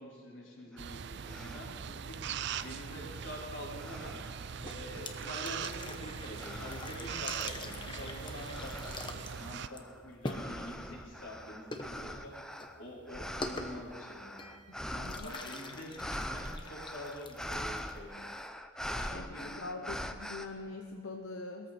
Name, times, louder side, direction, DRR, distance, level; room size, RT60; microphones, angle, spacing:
voice 1, 0.0-2.2 2.6-4.2 4.6-12.3 12.8-14.5 14.9-18.3 18.8-19.7, equal, 60° left, -5 dB, 4.7 m, -46 dB
sound 1, 0.8-0.9 1.3-1.9 2.4-3.4 3.8-4.6 5.2-5.7 6.4-7.1 7.7-20.5, equal, 5° left, 0.5 m, -43 dB
sound 2, 0.8-9.7, right 7 dB, 55° right, 0.4 m, -41 dB
sound 3, 4.6-18.3, left 2 dB, 20° left, 1.0 m, -45 dB
voice 2, 14.7-15.4 19.1-21.7, left 3 dB, 80° left, 3 dB, 0.9 m, -43 dB
21.0 x 14.0 x 4.4 m, 2.1 s
head